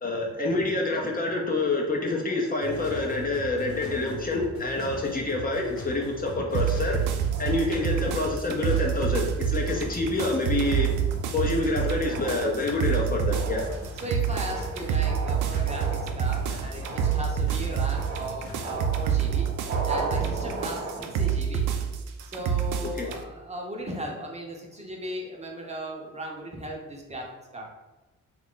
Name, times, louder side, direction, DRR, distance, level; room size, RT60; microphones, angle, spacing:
voice 1, 0.0-7.0 7.4-10.9 11.3-13.6 22.8-23.2, left 2 dB, 30° left, 0 dB, 0.6 m, -27 dB
sound 1, 2.6-18.8, equal, 50° left, 0.9 m, -40 dB
sound 2, 3.5-5.4 6.0-6.2 6.6-6.9 7.3-8.6 9.1-9.4 9.8-21.4, right 3 dB, 70° right, 0.9 m, -38 dB
sound 3, 6.5-23.2, right 8 dB, 85° right, 0.5 m, -28 dB
voice 2, 14.0-19.5 19.8-20.8 21.1-21.7 22.2-27.7, right 1 dB, 20° right, 0 dB, 0.7 m, -37 dB
3.0 x 2.4 x 3.7 m, 1.1 s
cardioid pair, 90°, 30 cm